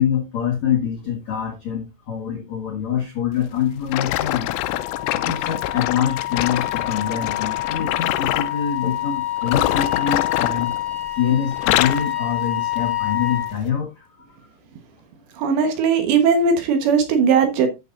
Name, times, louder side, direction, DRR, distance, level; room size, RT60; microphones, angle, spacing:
voice 1, 0.0-4.5 5.1-10.7 11.1-14.4, left 8 dB, 65° left, 1 dB, 1.7 m, -25 dB
sound 1, 3.9-8.6 9.4-11.2 11.5-12.1 12.7-12.9 13.6-13.7, left 15 dB, 80° left, 3.0 m, -25 dB
Wind instrument woodwind instrument, 4.1-13.5, left 13 dB, 40° left, 2.1 m, -27 dB
voice 2, 15.4-17.7, right 5 dB, 70° right, 6 dB, 3.2 m, -18 dB
13.0 x 6.9 x 2.6 m, 0.24 s
omnidirectional pair, 5.7 m